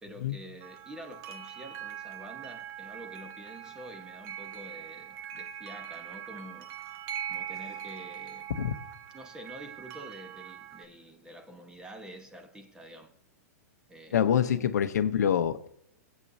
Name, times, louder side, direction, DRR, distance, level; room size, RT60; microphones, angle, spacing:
voice 1, 0.0-6.7 7.3-8.5 9.1-13.1 13.9-14.7, equal, 10° right, 1.2 m, -47 dB
sound 1, 0.6-10.8, right 10 dB, 30° right, 0.8 m, -42 dB
voice 2, 14.1-15.7, left 9 dB, 85° left, 0.9 m, -26 dB
19.5 x 8.4 x 2.8 m
hypercardioid pair, 145°, 9 cm